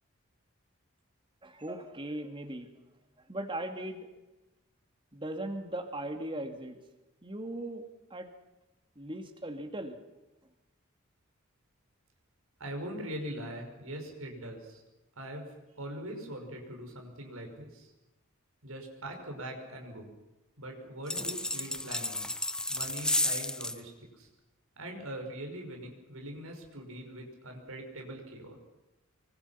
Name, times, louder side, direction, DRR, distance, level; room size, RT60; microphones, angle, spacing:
voice 1, 1.4-2.7 3.3-4.1 5.1-6.8 7.2-7.8 8.1-8.3 9.0-10.0, right 1 dB, 25° right, 6 dB, 2.5 m, -38 dB
voice 2, 12.6-14.8 15.2-15.5 15.8-17.9 18.6-20.2 20.6-22.3 22.7-24.3 24.8-28.6, right 1 dB, 80° right, 2 dB, 5.8 m, -42 dB
sound 1, 21.1-23.8, left 1 dB, 5° left, 0.7 m, -32 dB
25.5 x 24.5 x 5.9 m, 1.0 s
head